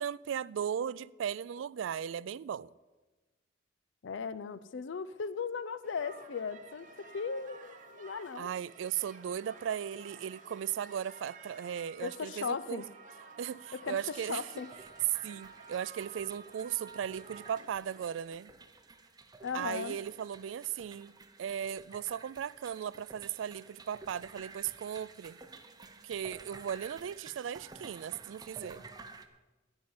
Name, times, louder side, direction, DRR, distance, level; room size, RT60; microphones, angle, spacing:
voice 1, 0.0-2.7 8.4-12.8 13.4-14.4 15.2-18.5 19.5-21.1 21.4-25.4 26.0-28.8, right 9 dB, 80° right, 0.3 m, -37 dB
voice 2, 4.0-8.5 12.0-12.9 13.7-14.7 19.4-20.0, left 5 dB, 75° left, 0.5 m, -37 dB
sound 1, 5.8-18.2, right 4 dB, 45° right, 1.2 m, -53 dB
sound 2, 14.0-29.3, right 3 dB, 20° right, 0.8 m, -53 dB
14.5 x 5.4 x 9.6 m
head